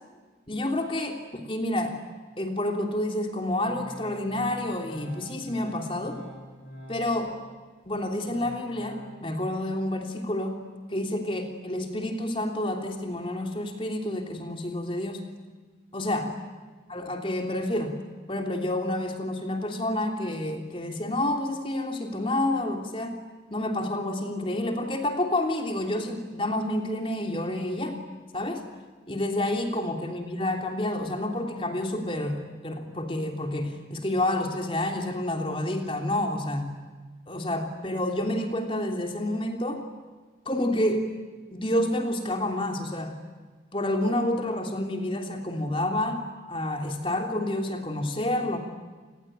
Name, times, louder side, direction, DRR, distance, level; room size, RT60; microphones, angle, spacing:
voice 1, 0.5-2.0 2.4-6.2 6.9-7.4 7.9-10.6 10.9-15.2 15.9-16.3 16.9-17.9 18.3-23.2 23.5-27.9 28.3-28.6 29.1-36.7 37.3-39.8 40.4-41.1 41.5-43.2 43.7-48.6, left 1 dB, 30° left, 4 dB, 3.3 m, -29 dB
Organ, 3.6-7.4 7.8-9.1, equal, 45° left, 7.3 m, -45 dB
29.0 x 20.5 x 9.1 m, 1.4 s
head